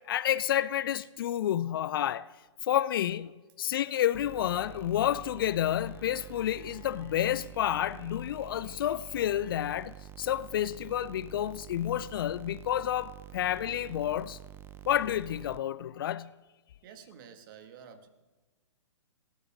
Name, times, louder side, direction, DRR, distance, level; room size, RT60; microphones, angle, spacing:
voice 1, 0.1-2.3 2.6-3.3 3.6-14.4 14.9-16.3, left 11 dB, 45° left, 0.5 m, -30 dB
sound 1, 4.1-15.6, right 12 dB, 15° right, 0.6 m, -48 dB
voice 2, 16.8-18.1, right 7 dB, 45° right, 1.9 m, -50 dB
20.0 x 17.5 x 3.7 m
figure-of-eight pair, 120°, 16 cm